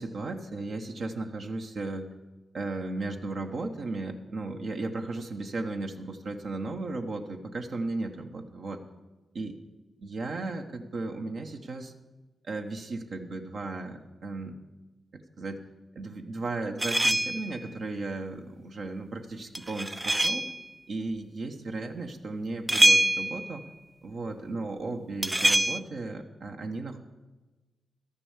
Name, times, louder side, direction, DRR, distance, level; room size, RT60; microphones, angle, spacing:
voice 1, 0.0-2.1 2.5-8.8 9.3-9.6 10.0-11.9 12.4-14.6 15.1-15.6 15.9-20.5 20.9-23.7 24.0-27.0, right 2 dB, 70° right, 3 dB, 1.1 m, -35 dB
sound 1, 16.8-17.6 19.5-20.6 22.7-23.5 25.2-25.8, right 1 dB, 20° right, 0.3 m, -24 dB
12.5 x 6.8 x 7.2 m, 1.2 s
supercardioid pair, 45°, 0 cm